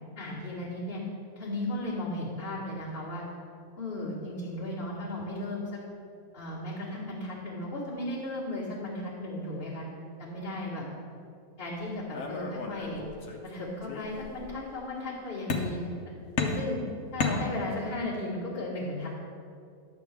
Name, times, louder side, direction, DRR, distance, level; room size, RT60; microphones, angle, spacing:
voice 1, 0.2-1.0 1.4-3.2 3.8-5.8 6.3-9.9 10.2-10.8 11.6-13.0 13.4-16.1 16.4-16.8 17.1-19.1, left 1 dB, 40° left, -12 dB, 2.1 m, -35 dB
sound 1, 12.1-13.5 13.8-14.6 15.5-16.0 16.4-18.0, left 3 dB, 65° left, 1.2 m, -33 dB
11.0 x 7.0 x 3.6 m, 2.3 s
omnidirectional pair, 1.6 m